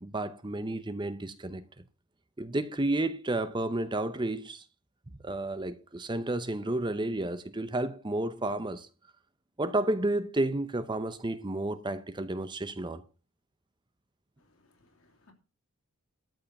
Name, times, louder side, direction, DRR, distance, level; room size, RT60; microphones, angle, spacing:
voice 1, 0.0-1.6 2.4-4.6 5.2-8.9 9.6-13.0, right 2 dB, 20° right, 0.7 m, -31 dB
voice 2, 14.4-15.3, left 2 dB, 65° left, 2.9 m, -65 dB
13.0 x 5.6 x 7.1 m
head